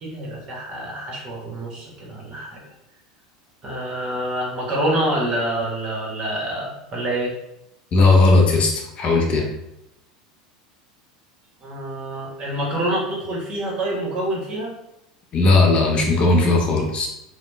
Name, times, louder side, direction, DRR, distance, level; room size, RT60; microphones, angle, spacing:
voice 1, 0.0-2.6 3.6-7.3 11.6-14.7, right 1 dB, 35° right, -3 dB, 1.1 m, -26 dB
voice 2, 7.9-9.5 15.3-17.1, left 3 dB, 40° left, 1 dB, 0.6 m, -17 dB
2.8 x 2.0 x 3.3 m, 0.86 s
hypercardioid pair, 80°, 3 cm